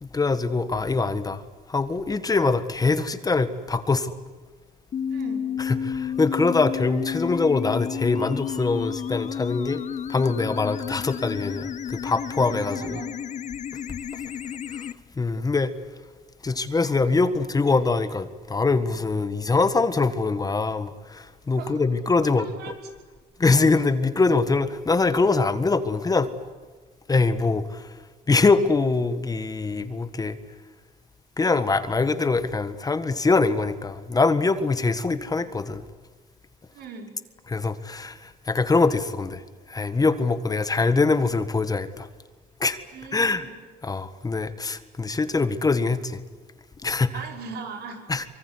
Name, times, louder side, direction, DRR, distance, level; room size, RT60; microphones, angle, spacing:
voice 1, 0.0-1.4 1.7-4.1 5.6-9.8 10.1-13.0 14.1-14.2 14.7-14.8 15.2-15.7 16.4-22.5 23.4-26.3 27.1-27.9 28.3-30.4 31.4-35.8 37.5-39.4 39.7-42.1 42.6-42.8 43.1-43.5 43.8-46.2 46.8-47.2 48.1-48.2, left 3 dB, 20° left, 11 dB, 1.6 m, -23 dB
sound 1, 4.9-14.9, left 8 dB, 45° left, 1.2 m, -31 dB
voice 2, 5.1-5.4 12.7-13.1 21.6-21.8 22.2-22.8 36.7-37.1 42.9-43.5 47.1-48.1, right 5 dB, 75° right, 3 dB, 5.8 m, -39 dB
24.5 x 24.0 x 9.8 m, 1.4 s
cardioid pair, 110°, 17 cm